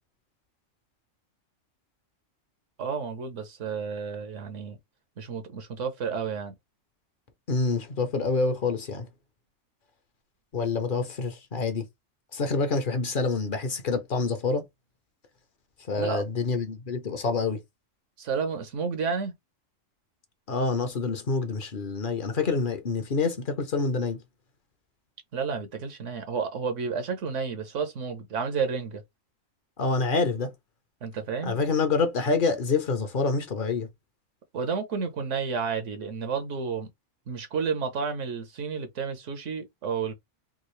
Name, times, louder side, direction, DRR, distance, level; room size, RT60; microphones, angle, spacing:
voice 1, 2.8-4.8 5.2-6.5 16.0-16.2 18.2-19.3 25.3-29.0 31.0-31.5 34.5-36.9 37.3-40.2, right 5 dB, 70° right, 1.2 m, -31 dB
voice 2, 7.5-9.1 10.5-11.9 12.3-14.6 15.9-17.6 20.5-24.2 29.8-30.5 31.4-33.9, left 4 dB, 45° left, 0.8 m, -27 dB
3.7 x 2.4 x 3.1 m
omnidirectional pair, 1.3 m